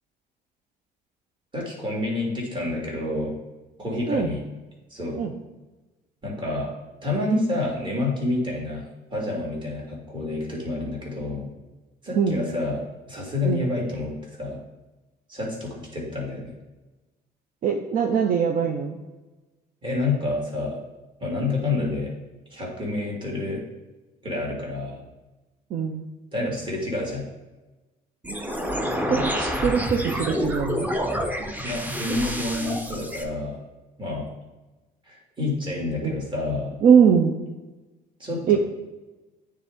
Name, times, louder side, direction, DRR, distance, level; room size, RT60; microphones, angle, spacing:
voice 1, 1.5-3.3 3.8-4.4 4.9-5.2 6.2-6.7 7.0-11.5 12.0-14.1 14.4-14.6 15.3-16.5 19.8-20.8 21.2-22.1 22.5-23.6 24.2-25.0 26.3-27.2 29.1-29.3 31.6-33.6 34.0-34.4 35.1-36.7 38.2-38.6, left 2 dB, 30° right, -3 dB, 2.3 m, -28 dB
voice 2, 17.6-19.0 25.7-26.1 29.1-30.9 36.0-36.1 36.8-37.4 38.5-38.6, right 7 dB, 55° right, 2 dB, 0.7 m, -21 dB
sound 1, 28.2-33.2, equal, 10° right, 0.8 m, -28 dB
9.1 x 3.7 x 3.6 m, 1.1 s
cardioid pair, 110°, 17 cm